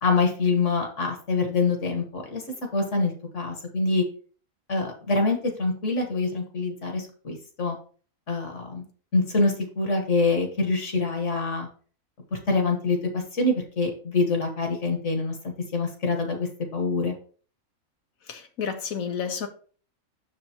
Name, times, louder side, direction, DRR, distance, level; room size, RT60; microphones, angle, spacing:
voice 1, 0.0-2.4 2.7-4.0 4.7-7.8 8.3-8.9 9.1-11.7 12.5-17.2, left 3 dB, 60° left, 1.8 m, -25 dB
voice 2, 18.3-19.5, left 7 dB, 75° left, 1.4 m, -31 dB
6.8 x 6.6 x 3.0 m
omnidirectional pair, 1.5 m